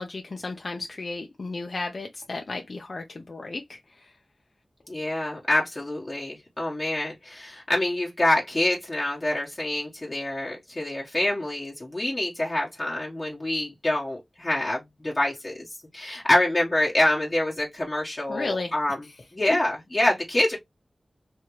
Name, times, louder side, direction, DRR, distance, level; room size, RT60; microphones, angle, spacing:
voice 1, 0.0-4.1 18.3-18.7, left 3 dB, 60° left, 0.5 m, -34 dB
voice 2, 4.9-15.7 15.9-19.0 19.3-20.6, left 1 dB, 30° left, 1.2 m, -26 dB
3.5 x 2.8 x 3.1 m
wide cardioid pair, 70°, 0 cm